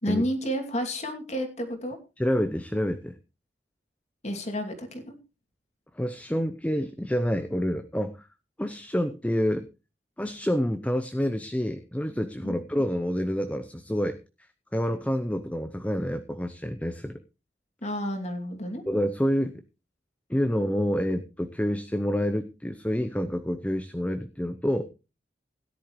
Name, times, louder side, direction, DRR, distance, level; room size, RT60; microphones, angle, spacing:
voice 1, 0.0-2.0 4.2-5.2 12.4-12.6 17.8-18.8, equal, 40° left, 5 dB, 2.6 m, -30 dB
voice 2, 2.2-3.2 6.0-8.3 8.6-9.7 10.2-14.2 14.7-17.1 18.9-19.5 20.3-24.9, equal, 10° left, 8 dB, 0.7 m, -28 dB
17.0 x 11.0 x 3.1 m, 0.29 s
head